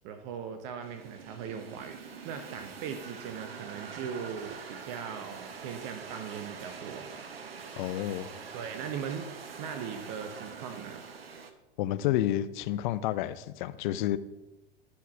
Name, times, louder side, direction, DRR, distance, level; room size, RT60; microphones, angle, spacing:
voice 1, 0.0-7.1 8.5-9.3 9.6-11.0, right 7 dB, 50° right, 7 dB, 1.0 m, -39 dB
sound 1, 0.8-11.5, right 5 dB, 85° right, 1.1 m, -44 dB
voice 2, 7.8-8.3 11.8-14.2, left 13 dB, 55° left, 15 dB, 0.6 m, -30 dB
12.0 x 4.7 x 5.9 m, 0.99 s
hypercardioid pair, 100°, 29 cm